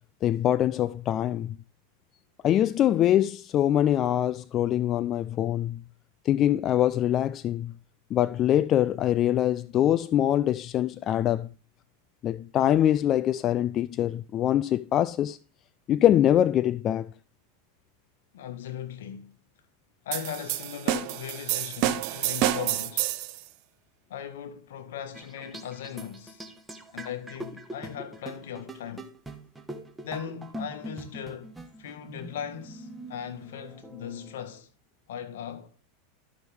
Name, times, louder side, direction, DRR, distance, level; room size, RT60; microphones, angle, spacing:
voice 1, 0.2-1.6 2.4-5.8 6.2-7.7 8.1-11.5 12.2-15.4 15.9-17.1, left 11 dB, 40° left, 0.4 m, -24 dB
voice 2, 18.3-19.3 20.0-23.1 24.1-26.5 26.9-29.1 30.0-34.7 35.1-35.7, left 9 dB, 75° left, 1.5 m, -38 dB
sound 1, 20.1-23.4, right 13 dB, 55° right, 0.9 m, -28 dB
sound 2, 25.1-34.6, right 1 dB, 10° right, 1.3 m, -43 dB
12.5 x 6.2 x 3.4 m
hypercardioid pair, 110°, 0 cm